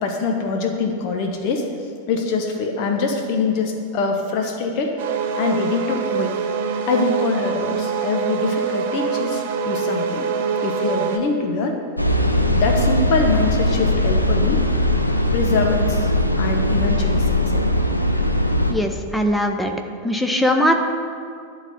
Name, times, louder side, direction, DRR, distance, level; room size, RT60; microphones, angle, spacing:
voice 1, 0.0-1.7 2.1-4.9 5.4-6.3 6.9-10.3 10.6-11.8 12.5-14.6 15.3-16.1 16.4-17.6, left 4 dB, 45° left, 3 dB, 1.1 m, -24 dB
sound 1, 5.0-11.2, right 6 dB, 50° right, 0.7 m, -24 dB
sound 2, 12.0-18.7, left 1 dB, 90° left, 0.6 m, -19 dB
voice 2, 18.7-19.7 20.0-20.7, equal, 5° left, 4 dB, 0.8 m, -20 dB
11.0 x 4.2 x 7.7 m, 2.3 s
figure-of-eight pair, 90°, 0 cm